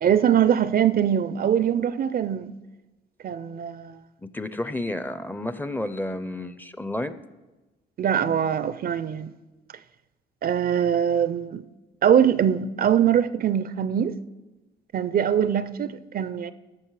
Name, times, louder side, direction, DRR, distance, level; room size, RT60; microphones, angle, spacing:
voice 1, 0.0-2.6 3.2-4.0 8.0-9.3 10.4-11.6 12.0-14.2 14.9-16.5, right 9 dB, 50° right, 0.4 m, -22 dB
voice 2, 4.2-7.2, left 1 dB, 10° left, 0.5 m, -31 dB
14.0 x 6.0 x 4.7 m
cardioid pair, 90°, 20 cm